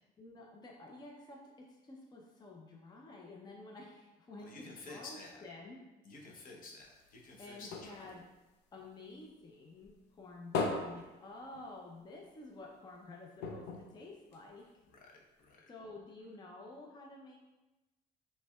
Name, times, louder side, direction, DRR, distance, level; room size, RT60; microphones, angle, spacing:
voice 1, 0.2-5.8 7.4-8.3 8.7-14.7 15.7-17.4, left 2 dB, 25° left, -1 dB, 0.5 m, -51 dB
voice 2, 4.4-5.4 6.0-8.0 14.9-15.7, left 3 dB, 55° left, -1 dB, 0.9 m, -51 dB
sound 1, 6.8-9.4 9.8-12.1 12.4-12.5 12.8-12.9 13.4-14.9 15.5-15.6, left 4 dB, 85° left, 0.6 m, -40 dB
5.5 x 3.2 x 2.3 m, 1.1 s
cardioid pair, 110°, 17 cm